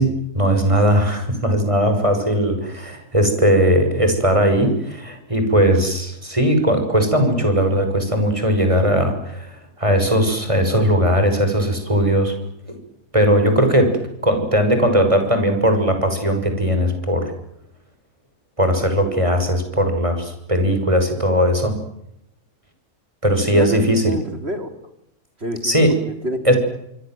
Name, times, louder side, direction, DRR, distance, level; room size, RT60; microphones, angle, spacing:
voice 1, 0.0-12.4 12.7-12.8 13.1-17.3 18.6-21.7 23.2-24.1 25.6-26.0 26.4-26.5, equal, 20° right, 6 dB, 6.5 m, -18 dB
voice 2, 23.4-24.7 25.4-26.5, right 1 dB, 40° right, 7 dB, 4.0 m, -28 dB
26.0 x 25.5 x 7.8 m, 0.79 s
omnidirectional pair, 1.7 m